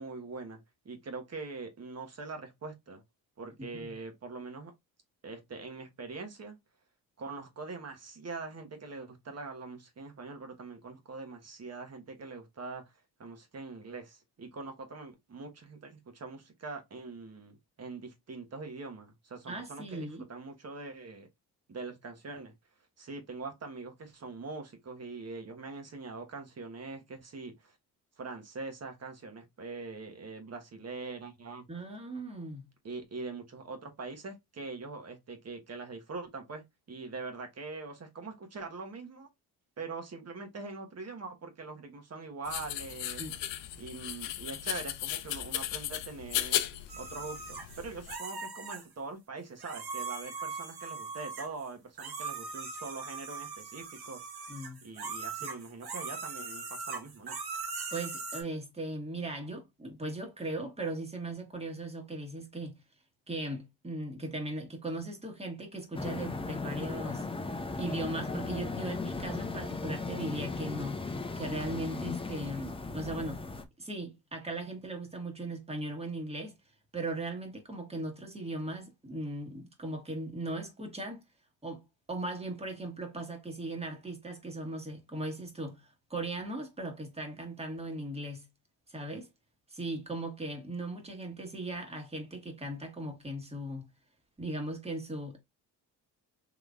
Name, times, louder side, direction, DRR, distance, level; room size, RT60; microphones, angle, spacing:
voice 1, 0.0-3.0 3.4-4.7 5.2-6.6 7.2-12.8 13.2-21.3 21.7-22.5 23.0-27.7 28.2-31.7 32.8-39.3 39.8-43.2 43.8-46.6 47.0-54.2 54.8-57.4, right 3 dB, 40° right, 1.3 m, -43 dB
voice 2, 19.5-20.2 31.7-32.7 43.2-43.4 54.5-54.8 57.9-62.8 63.3-67.3 67.8-73.4 73.8-76.5 76.9-81.2 81.6-81.8 82.1-88.5 88.9-89.3 89.7-93.9 94.4-95.4, right 1 dB, 15° right, 1.5 m, -38 dB
sound 1, 42.5-48.2, left 13 dB, 90° left, 0.6 m, -36 dB
sound 2, 46.9-48.8 49.6-51.7 52.0-58.4, right 4 dB, 60° right, 1.3 m, -40 dB
sound 3, 65.9-73.6, left 3 dB, 15° left, 0.6 m, -37 dB
3.8 x 3.1 x 2.4 m
supercardioid pair, 70°, 41 cm